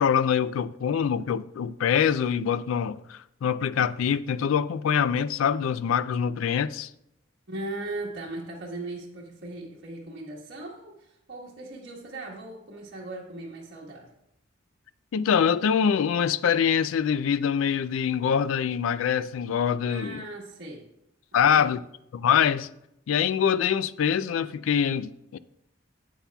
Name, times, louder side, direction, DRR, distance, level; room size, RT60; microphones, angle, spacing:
voice 1, 0.0-6.9 15.1-20.3 21.3-21.8 22.1-22.7 23.1-25.4, left 7 dB, 80° left, 0.3 m, -24 dB
voice 2, 7.5-14.1 19.8-20.8 21.3-21.8, right 2 dB, 55° right, 1.4 m, -38 dB
9.8 x 8.3 x 2.3 m
head